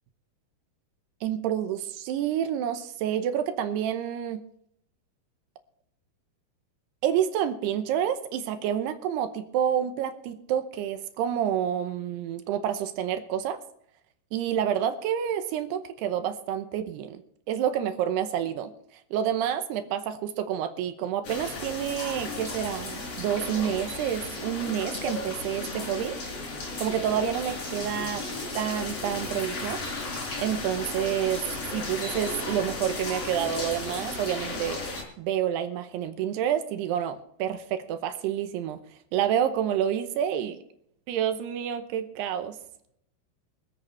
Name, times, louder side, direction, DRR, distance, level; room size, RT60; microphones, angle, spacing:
voice 1, 1.2-4.4 7.0-13.6 14.3-17.2 17.5-18.7 19.1-26.2 26.8-28.2 28.5-29.8 30.4-31.4 31.7-34.8 35.2-38.8 39.1-40.6 41.1-42.6, right 9 dB, 80° right, 8 dB, 2.9 m, -28 dB
sound 1, 21.2-35.0, left 2 dB, 40° left, 4.4 m, -35 dB
25.0 x 8.5 x 3.3 m, 0.71 s
omnidirectional pair, 4.8 m